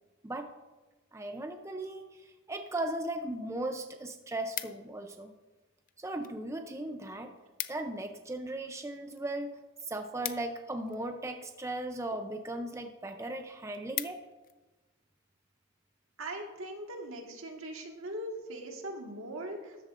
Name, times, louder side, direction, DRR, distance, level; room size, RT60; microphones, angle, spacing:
voice 1, 1.1-5.3 6.0-7.3 7.7-9.5 9.8-14.2, right 1 dB, 15° right, 5 dB, 0.5 m, -37 dB
sound 1, 4.0-5.2 5.9-6.4 6.7-6.8 7.1-7.2 7.4-8.0 8.4-11.2 11.9-12.3 12.8-12.9 13.2-13.3 13.6-14.6 15.1-15.3, left 13 dB, 40° left, 0.4 m, -41 dB
voice 2, 16.2-19.8, right 1 dB, 75° right, 2 dB, 1.7 m, -40 dB
13.5 x 11.0 x 2.5 m, 1.2 s
head